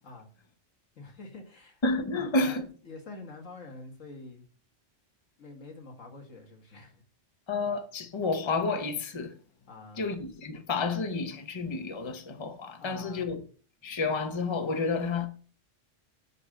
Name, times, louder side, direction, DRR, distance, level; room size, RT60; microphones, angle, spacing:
voice 1, 1.0-1.8 2.1-4.4 5.4-7.0 9.7-10.1 12.8-13.3, left 3 dB, 90° left, 2.0 m, -46 dB
voice 2, 1.8-2.7 7.5-9.3 10.0-13.4 13.8-15.3, left 3 dB, 25° left, 0.9 m, -30 dB
6.2 x 5.4 x 6.4 m
omnidirectional pair, 1.3 m